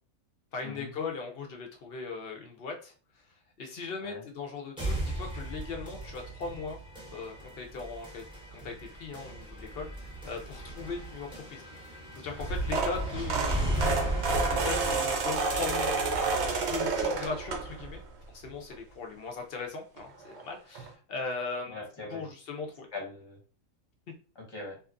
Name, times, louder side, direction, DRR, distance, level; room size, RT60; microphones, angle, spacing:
voice 1, 0.5-2.9 3.6-6.8 7.1-8.2 8.5-11.6 12.1-13.8 14.5-16.1 16.7-18.0 18.3-21.8 22.1-22.9, left 4 dB, 60° left, 2 dB, 0.6 m, -38 dB
sound 1, 4.8-16.7, right 1 dB, 5° right, 0.5 m, -37 dB
sound 2, 12.4-18.0 18.5-18.7 20.0-20.1 20.3-20.4 20.7-20.9, right 3 dB, 60° right, 0.8 m, -29 dB
voice 2, 21.7-22.3 22.9-23.4 24.3-24.8, left 3 dB, 20° left, -2 dB, 0.9 m, -40 dB
2.8 x 2.4 x 2.4 m, 0.38 s
omnidirectional pair, 1.4 m